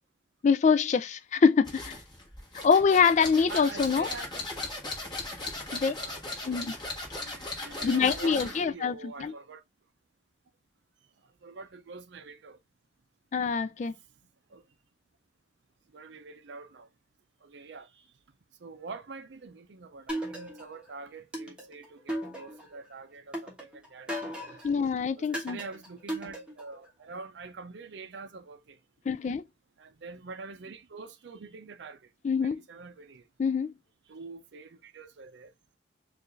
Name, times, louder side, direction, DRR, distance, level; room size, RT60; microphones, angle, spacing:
voice 1, 0.4-2.0 2.6-4.1 5.7-5.9 6.5-6.8 7.8-9.3 13.3-13.9 24.6-25.6 29.1-29.4 32.2-32.6 33.4-33.7, left 5 dB, 40° left, 0.3 m, -25 dB
sound 1, 1.6-8.7, left 2 dB, 25° left, 1.4 m, -38 dB
voice 2, 3.5-4.3 5.9-6.6 7.1-9.6 11.4-12.6 14.5-14.6 15.9-16.9 17.4-18.1 18.6-24.6 25.2-28.8 29.8-32.1 32.4-33.3 34.1-35.5, right 4 dB, 70° right, 0.5 m, -45 dB
sound 2, 20.1-20.8 21.3-22.8 23.3-24.7 25.3-26.8, equal, 5° right, 1.1 m, -37 dB
4.5 x 2.5 x 3.1 m
head